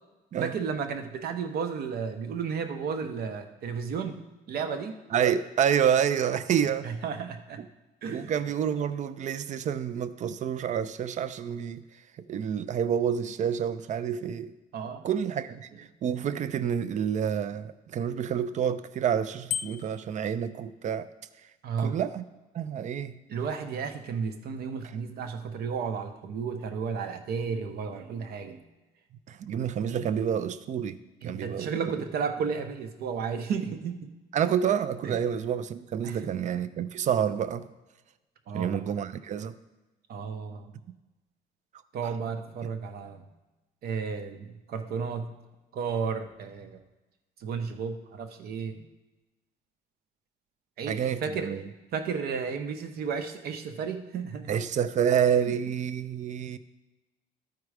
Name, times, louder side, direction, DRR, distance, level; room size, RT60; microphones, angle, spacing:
voice 1, 0.4-4.2 4.5-5.0 6.8-7.6 8.0-8.3 14.7-15.1 21.6-22.0 23.3-28.6 29.4-29.5 31.2-34.0 35.0-35.2 36.0-36.3 38.5-38.8 40.1-40.8 41.9-43.2 43.8-45.3 45.7-46.8 47.4-48.9 50.8-51.5 51.9-54.6 55.5-55.6, right 6 dB, 65° right, 7 dB, 0.9 m, -33 dB
voice 2, 5.1-6.9 8.1-11.8 12.3-14.5 15.0-21.1 21.8-22.2 22.5-23.2 29.3-31.0 31.2-32.0 34.3-37.7 38.5-39.5 50.9-51.7 54.5-56.6, right 8 dB, 45° right, 13 dB, 0.5 m, -28 dB
Bicycle bell, 19.5-20.1, left 9 dB, 45° left, 0.7 m, -33 dB
12.5 x 4.7 x 4.9 m, 1.1 s
cardioid pair, 110°, 17 cm